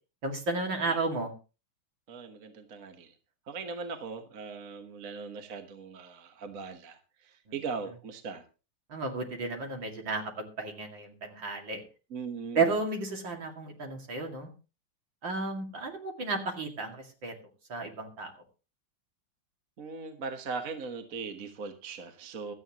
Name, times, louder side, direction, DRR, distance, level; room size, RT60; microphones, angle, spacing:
voice 1, 0.2-1.3 8.9-11.8 12.5-14.5 15.2-17.3 17.7-18.3, right 3 dB, 65° right, 3 dB, 3.0 m, -33 dB
voice 2, 2.1-3.1 3.5-8.4 12.1-12.7 19.8-22.5, right 5 dB, 45° right, 7 dB, 1.5 m, -39 dB
16.5 x 12.5 x 3.0 m, 0.32 s
omnidirectional pair, 2.2 m